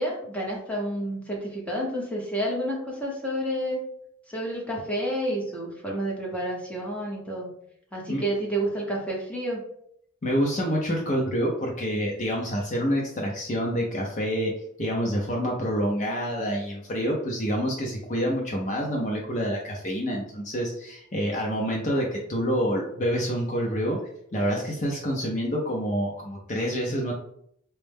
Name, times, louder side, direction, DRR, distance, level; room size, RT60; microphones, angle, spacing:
voice 1, 0.0-3.8 4.3-7.5 7.9-9.6, right 1 dB, 5° left, -3 dB, 0.9 m, -30 dB
voice 2, 10.2-24.0 24.3-27.1, equal, 40° left, -1 dB, 0.6 m, -27 dB
4.4 x 2.1 x 3.4 m, 0.70 s
head